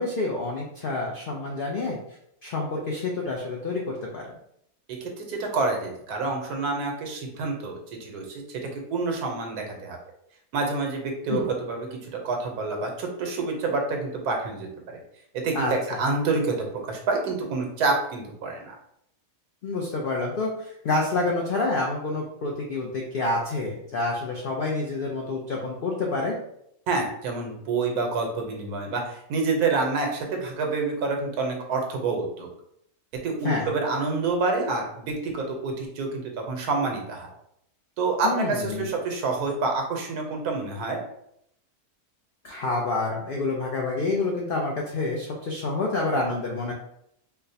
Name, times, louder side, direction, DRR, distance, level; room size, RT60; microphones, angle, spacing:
voice 1, 0.0-2.0 2.4-4.4 11.3-11.5 15.5-16.0 19.6-26.4 33.4-33.7 38.2-38.9 42.4-46.7, left 3 dB, 80° left, -2 dB, 0.4 m, -28 dB
voice 2, 5.0-10.0 10.5-12.0 12.2-15.0 15.3-15.7 16.0-18.8 26.9-32.5 33.2-37.3 38.0-41.0, right 3 dB, 90° right, 2 dB, 1.3 m, -28 dB
4.3 x 2.1 x 2.7 m, 0.74 s
omnidirectional pair, 1.6 m